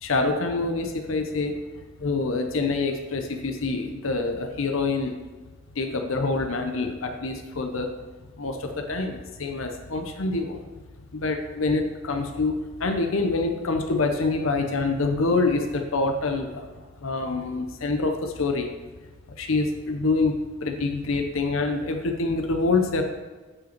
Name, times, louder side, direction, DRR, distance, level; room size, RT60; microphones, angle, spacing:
voice 1, 0.0-1.6 2.0-5.2 5.8-7.9 8.4-10.6 11.1-16.7 17.0-18.7 19.4-23.0, left 3 dB, 90° left, 5 dB, 0.7 m, -26 dB
8.5 x 5.2 x 4.5 m, 1.3 s
head